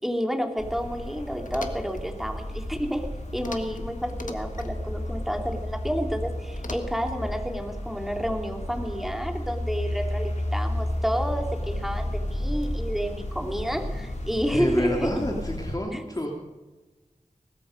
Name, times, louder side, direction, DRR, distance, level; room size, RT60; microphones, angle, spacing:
voice 1, 0.0-3.1 3.3-15.1 15.9-16.0, equal, ahead, 3 dB, 2.8 m, -30 dB
sound 1, 0.6-15.7, left 1 dB, 65° left, 3.9 m, -32 dB
sound 2, 1.4-2.0 3.4-3.8 4.1-4.7 6.5-7.2, left 3 dB, 80° left, 1.7 m, -40 dB
voice 2, 14.5-16.3, left 1 dB, 30° left, 0 dB, 2.9 m, -28 dB
20.0 x 13.5 x 5.2 m, 1.2 s
wide cardioid pair, 45°, 13 cm